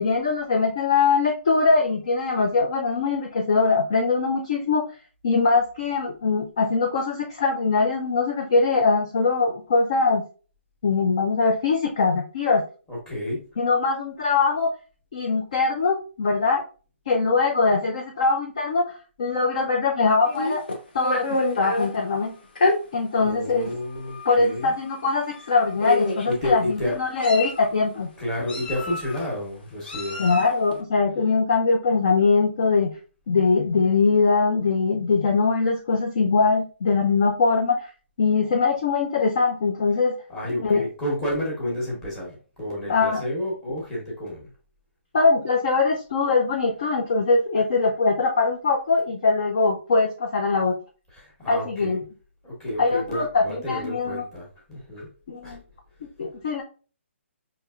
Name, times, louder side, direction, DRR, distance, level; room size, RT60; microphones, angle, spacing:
voice 1, 0.0-4.8 5.2-10.2 10.8-12.6 13.6-14.7 15.1-16.6 17.1-20.6 20.9-21.3 21.6-22.3 22.9-23.7 24.2-28.1 30.2-32.9 33.3-37.9 38.2-40.1 40.6-40.8 42.9-43.2 45.1-50.7 51.5-52.0 52.8-54.2 55.3-55.6 56.2-56.6, left 4 dB, 30° left, 2 dB, 0.3 m, -22 dB
voice 2, 12.9-13.4 23.2-24.7 26.2-27.0 28.2-30.2 40.3-44.5 51.1-52.1 52.4-55.1 55.4-55.6, left 1 dB, 5° left, -5 dB, 0.9 m, -30 dB
Meow, 20.2-21.9 22.5-22.8 23.6-23.7 24.1-24.3 25.3-25.4 25.8-26.3 26.9-27.7 28.5-29.2 29.8-30.5, left 2 dB, 45° left, 0.9 m, -26 dB
5.1 x 2.8 x 2.3 m, 0.37 s
hypercardioid pair, 180°, 7 cm